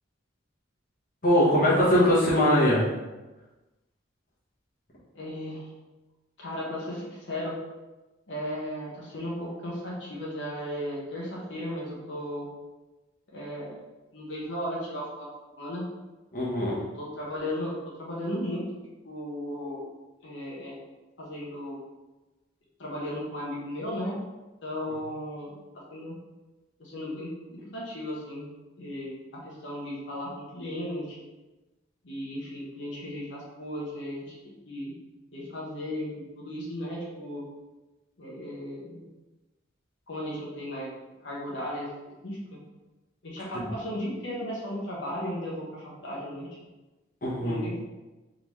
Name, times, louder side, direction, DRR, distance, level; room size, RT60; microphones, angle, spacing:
voice 1, 1.2-2.9 16.3-16.8 43.5-43.7 47.2-47.6, equal, 45° left, -7 dB, 1.1 m, -22 dB
voice 2, 5.1-5.7 6.4-7.5 8.3-12.5 13.3-13.8 14.1-15.3 15.6-15.8 16.9-17.7 18.0-18.6 19.0-19.8 20.2-20.8 21.2-21.8 22.8-24.2 24.6-25.6 25.9-26.1 26.8-28.5 28.8-31.2 32.0-34.3 34.7-34.9 35.3-37.4 38.2-39.1 40.1-40.9 41.2-41.9 42.2-42.6 43.2-46.5 47.4-47.8, left 1 dB, 65° left, -5 dB, 1.1 m, -35 dB
3.8 x 3.8 x 3.1 m, 1.1 s
head